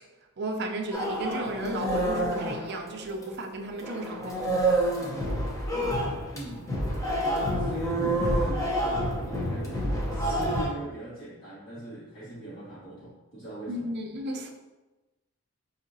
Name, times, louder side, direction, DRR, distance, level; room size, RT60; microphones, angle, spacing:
voice 1, 0.4-4.7 13.7-14.5, right 1 dB, 50° right, 0.4 m, -34 dB
sound 1, 0.9-3.5 3.8-10.7, right 1 dB, 15° left, 0.5 m, -28 dB
voice 2, 6.3-6.7 7.2-13.9, right 2 dB, 65° left, 1.2 m, -41 dB
4.9 x 2.7 x 2.6 m
head